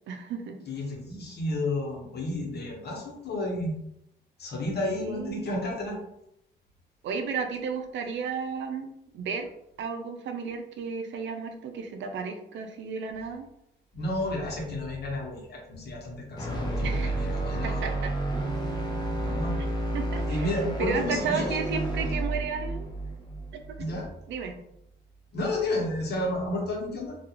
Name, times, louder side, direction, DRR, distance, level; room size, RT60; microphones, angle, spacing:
voice 1, 0.1-0.6 4.8-5.5 7.0-9.5 9.8-13.5 16.8-17.2 17.6-18.1 19.9-20.5 20.8-22.9 23.9-24.0 24.3-24.5, right 5 dB, 70° right, 6 dB, 0.4 m, -33 dB
voice 2, 0.7-3.8 4.4-6.0 13.9-18.1 19.0-19.6 20.1-21.6 23.8-24.1 25.3-27.2, left 1 dB, 55° left, -1 dB, 1.0 m, -32 dB
sound 1, 16.4-24.5, right 2 dB, 20° left, 0.7 m, -31 dB
2.3 x 2.3 x 2.9 m, 0.80 s
cardioid pair, 90°, 20 cm